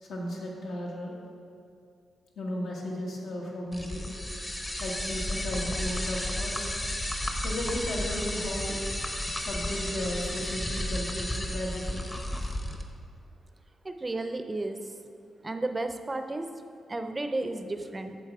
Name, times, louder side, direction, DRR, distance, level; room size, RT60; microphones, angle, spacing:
voice 1, 0.0-1.2 2.4-4.1 4.8-6.7 7.4-8.8 9.4-12.0 12.4-12.6, left 1 dB, 80° left, -3 dB, 1.8 m, -35 dB
sound 1, 3.7-12.8, left 1 dB, 15° left, 0.8 m, -33 dB
voice 2, 13.8-14.8 15.4-16.5 16.9-18.2, right 2 dB, 20° right, 7 dB, 0.6 m, -32 dB
8.3 x 7.0 x 4.7 m, 2.3 s
cardioid pair, 100°, 0 cm